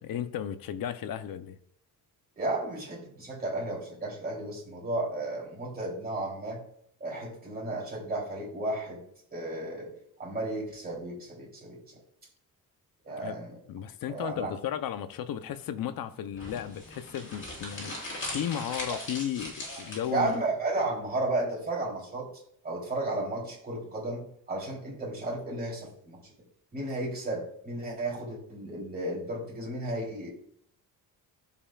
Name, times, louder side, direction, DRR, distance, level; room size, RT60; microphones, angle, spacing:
voice 1, 0.0-1.6 13.2-13.4 13.7-20.4, left 10 dB, 65° left, 0.8 m, -35 dB
voice 2, 2.4-6.6 7.0-9.0 9.3-9.9 10.2-11.8 13.0-13.6 14.1-14.5 19.7-19.8 20.1-22.3 22.6-26.3 26.7-30.3, right 2 dB, 25° right, 3.4 m, -33 dB
sound 1, 16.3-20.3, left 1 dB, 30° left, 3.8 m, -39 dB
14.5 x 5.6 x 2.4 m
cardioid pair, 145°, 37 cm